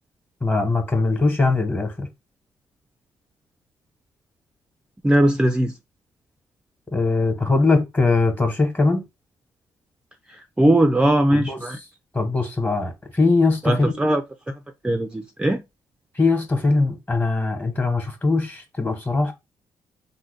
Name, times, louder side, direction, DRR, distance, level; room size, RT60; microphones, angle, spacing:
voice 1, 0.4-2.1 6.9-9.0 11.3-11.6 12.1-13.9 16.1-19.3, left 3 dB, 20° left, 1.2 m, -21 dB
voice 2, 5.0-5.7 10.3-11.8 13.6-14.6 14.8-15.6, right 1 dB, 10° right, 0.4 m, -20 dB
3.5 x 2.2 x 3.2 m
cardioid pair, 75°, 9 cm